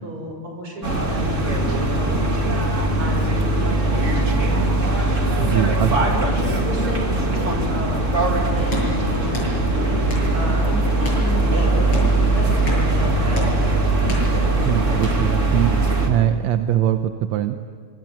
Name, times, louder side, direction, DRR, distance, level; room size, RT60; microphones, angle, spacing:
voice 1, 0.0-2.6 3.0-4.7 5.4-5.7 5.9-13.9, equal, 45° right, 1 dB, 7.2 m, -33 dB
sound 1, 0.8-16.1, right 2 dB, 25° right, 3.0 m, -20 dB
voice 2, 5.4-6.0 14.6-15.7 16.1-17.6, right 12 dB, 75° right, 8 dB, 2.0 m, -21 dB
sound 2, 8.5-15.9, left 1 dB, 40° left, 8.1 m, -33 dB
26.0 x 23.0 x 9.1 m, 2.1 s
omnidirectional pair, 3.3 m